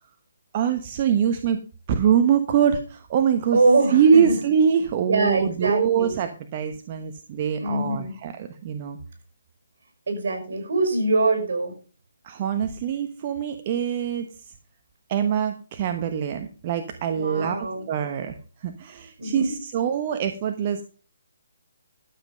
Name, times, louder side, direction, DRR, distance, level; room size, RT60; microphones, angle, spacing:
voice 1, 0.5-1.6 1.9-3.6 3.9-9.0 12.2-14.5 15.1-20.8, right 8 dB, 35° right, 7 dB, 1.1 m, -24 dB
voice 2, 3.5-4.4 5.1-6.1 7.6-8.2 10.1-11.7 17.1-17.9 19.2-19.6, right 2 dB, 65° right, 5 dB, 5.4 m, -23 dB
12.5 x 7.6 x 5.1 m, 0.37 s
hypercardioid pair, 155°, 0 cm